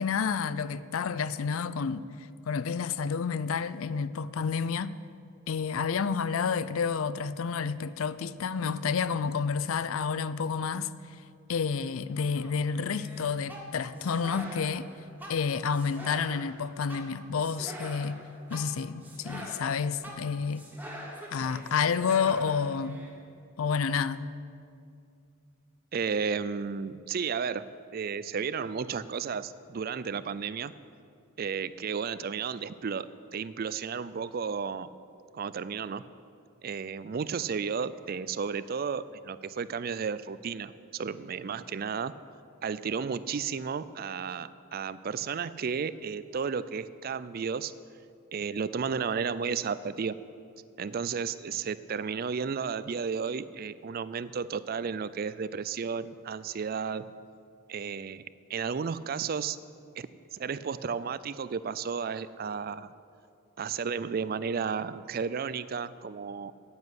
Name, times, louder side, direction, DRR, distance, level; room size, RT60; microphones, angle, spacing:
voice 1, 0.0-2.1 2.5-4.9 5.5-10.9 11.5-14.9 15.3-18.2 18.5-20.7 21.3-23.0 23.6-24.2, left 6 dB, 80° left, 0.5 m, -29 dB
sound 1, 12.2-23.1, equal, 10° right, 1.5 m, -45 dB
voice 2, 25.9-30.7 31.4-33.1 33.3-34.9 35.3-36.0 36.6-42.1 42.6-47.7 48.3-50.2 50.8-57.0 57.7-58.2 58.5-59.6 60.0-62.9 63.6-66.5, right 6 dB, 45° right, 0.4 m, -33 dB
9.6 x 9.6 x 8.0 m
head